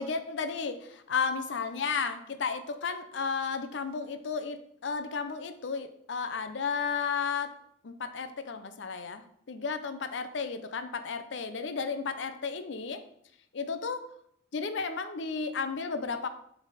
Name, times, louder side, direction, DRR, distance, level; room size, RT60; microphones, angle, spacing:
voice 1, 0.0-7.5 7.8-13.0 13.5-14.1 14.5-16.3, left 5 dB, 65° left, 9 dB, 0.5 m, -33 dB
7.1 x 3.4 x 4.1 m, 0.70 s
head